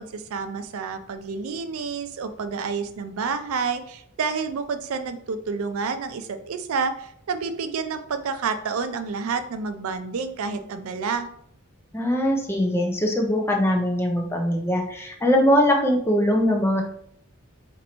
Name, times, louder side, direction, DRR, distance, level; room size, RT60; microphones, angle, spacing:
voice 1, 0.0-11.3, right 5 dB, 80° right, 9 dB, 0.4 m, -29 dB
voice 2, 11.9-16.8, equal, 10° left, 1 dB, 0.4 m, -21 dB
2.9 x 2.6 x 4.1 m, 0.68 s
head